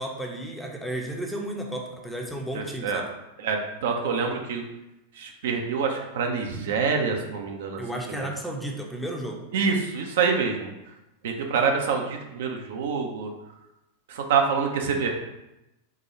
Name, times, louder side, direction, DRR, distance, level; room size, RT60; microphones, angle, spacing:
voice 1, 0.0-3.0 7.8-9.4, right 1 dB, 5° left, 0 dB, 0.7 m, -33 dB
voice 2, 2.5-3.0 3.4-4.6 5.2-7.8 8.1-8.3 9.5-10.7 11.2-13.3 14.1-15.1, right 5 dB, 55° right, 2 dB, 0.5 m, -26 dB
4.6 x 2.3 x 4.2 m, 0.95 s
figure-of-eight pair, 90°, 0 cm